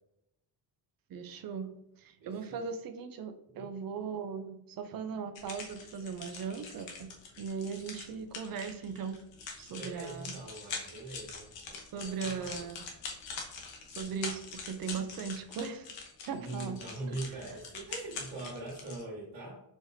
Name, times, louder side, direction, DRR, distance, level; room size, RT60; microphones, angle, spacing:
voice 1, 1.1-1.7 2.0-7.1 7.4-9.2 9.6-10.3 11.9-12.8 14.0-15.9 16.2-16.8 17.1-17.2, right 6 dB, 55° right, 8 dB, 0.5 m, -38 dB
voice 2, 2.2-2.7 3.6-3.7 9.8-12.7 16.4-19.6, right 2 dB, 75° right, -6 dB, 1.2 m, -42 dB
sound 1, 5.4-19.0, left 4 dB, 90° left, 1.1 m, -44 dB
4.6 x 3.9 x 2.6 m, 0.84 s
cardioid pair, 170°, 43 cm